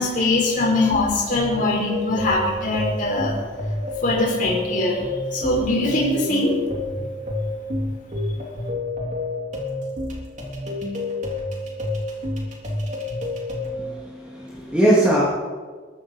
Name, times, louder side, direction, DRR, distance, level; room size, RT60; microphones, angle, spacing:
voice 1, 0.0-3.4 4.0-5.0 5.3-6.6 7.0-7.1, left 2 dB, 50° left, -3 dB, 5.4 m, -22 dB
sound 1, 0.5-13.7, left 2 dB, 45° right, 3.4 m, -29 dB
voice 2, 13.7-15.2, right 1 dB, 5° right, -7 dB, 3.0 m, -20 dB
21.0 x 14.5 x 4.8 m, 1.5 s
head